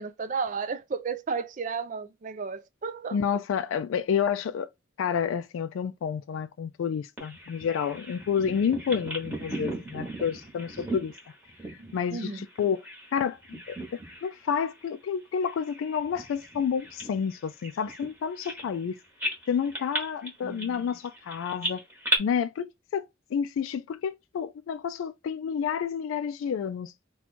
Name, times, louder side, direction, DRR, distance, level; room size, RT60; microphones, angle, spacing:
voice 1, 0.0-3.2 11.8-12.4 20.4-20.9, right 5 dB, 40° right, 0.4 m, -33 dB
voice 2, 3.1-4.7 5.0-11.1 11.9-19.0 19.5-21.8 22.2-22.7 22.9-26.9, left 7 dB, 90° left, 0.3 m, -29 dB
Bird vocalization bird call bird song, 7.2-13.1 13.4-14.3 14.6-14.8 15.4-18.9 19.2-22.2, right 1 dB, 10° right, 1.2 m, -36 dB
2.8 x 2.3 x 4.1 m
head